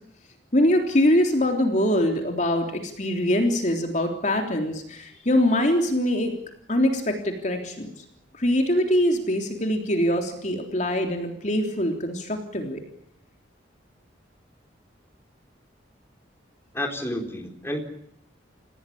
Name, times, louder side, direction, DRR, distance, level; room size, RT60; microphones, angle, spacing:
voice 1, 0.5-6.4 6.7-7.9 8.4-12.8, left 1 dB, 40° left, 4 dB, 3.5 m, -23 dB
voice 2, 16.7-17.8, left 1 dB, 15° left, 3 dB, 4.0 m, -30 dB
30.0 x 17.5 x 8.6 m, 0.71 s
head